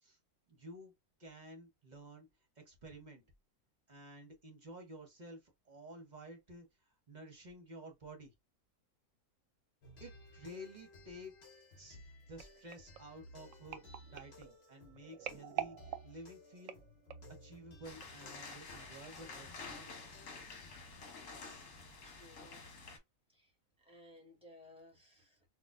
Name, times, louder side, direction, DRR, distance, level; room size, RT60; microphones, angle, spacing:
voice 1, 0.5-0.9 1.2-2.3 2.6-3.2 3.9-8.3 10.0-11.3 11.8-16.8 17.4-20.0 20.4-20.6, right 1 dB, 35° right, 0.9 m, -52 dB
sound 1, 9.8-20.9, left 1 dB, 50° left, 1.2 m, -58 dB
sound 2, 12.4-17.4 18.0-18.2 18.5-18.6, right 11 dB, 70° right, 0.9 m, -46 dB
sound 3, 17.8-23.0, left 4 dB, 65° left, 1.4 m, -50 dB
voice 2, 22.0-22.6 23.3-25.4, left 1 dB, 5° right, 1.4 m, -59 dB
4.1 x 2.4 x 2.5 m
omnidirectional pair, 1.5 m